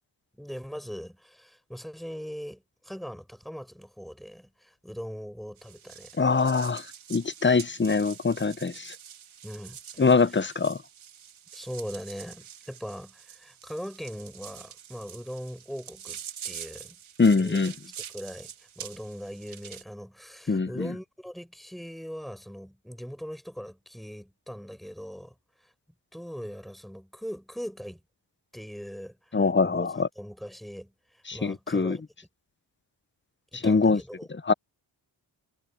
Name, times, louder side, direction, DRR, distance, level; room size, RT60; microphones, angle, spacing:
voice 1, 0.4-6.1 9.4-10.1 11.5-17.0 17.4-17.7 18.1-25.3 25.6-25.7 26.1-28.0 28.5-29.9 30.2-32.0 33.5-34.3, equal, ahead, 7.6 m, -40 dB
sound 1, 5.6-19.8, right 9 dB, 90° right, 2.0 m, -45 dB
voice 2, 6.2-8.9 10.0-10.8 17.2-17.7 20.5-20.9 29.3-30.1 31.3-32.0 33.5-34.0 34.3-34.5, left 4 dB, 25° left, 0.9 m, -23 dB
cardioid pair, 50°, 47 cm